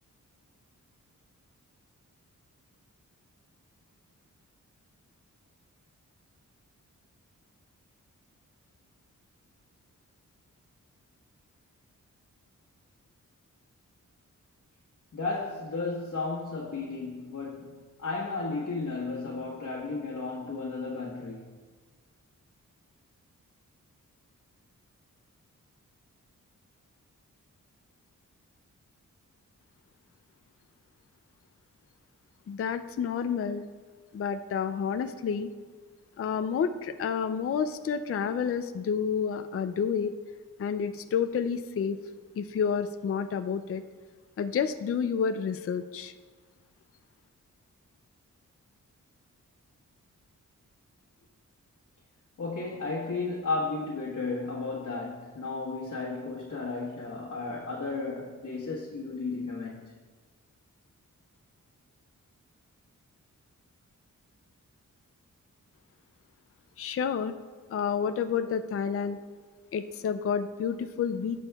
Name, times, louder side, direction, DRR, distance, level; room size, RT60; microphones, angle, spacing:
voice 1, 15.1-21.5 52.4-59.9, left 3 dB, 65° left, 1.4 m, -34 dB
voice 2, 32.5-33.7 34.1-35.5 36.2-40.1 40.6-42.0 42.4-43.8 44.4-46.1 66.8-67.3 67.7-69.2 69.7-71.4, left 7 dB, 45° left, 0.4 m, -29 dB
17.5 x 6.2 x 2.3 m
wide cardioid pair, 125°, 31 cm